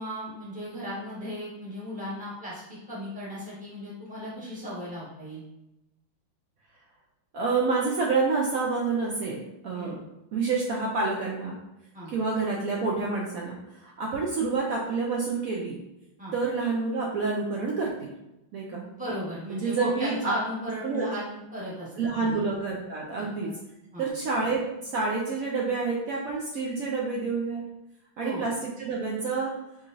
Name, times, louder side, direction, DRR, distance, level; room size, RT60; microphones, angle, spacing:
voice 1, 0.0-5.4 9.7-10.0 11.9-12.1 16.2-16.3 18.7-22.4 23.2-23.3 23.9-24.1 28.2-28.4, equal, 5° right, -7 dB, 1.0 m, -36 dB
voice 2, 7.3-10.0 10.3-11.5 12.1-15.8 16.3-18.1 18.5-18.8 19.5-20.3 20.8-21.1 22.0-23.5 24.0-27.6 28.2-29.5, right 4 dB, 85° right, -3 dB, 0.7 m, -28 dB
4.8 x 3.1 x 2.5 m, 0.92 s
omnidirectional pair, 2.2 m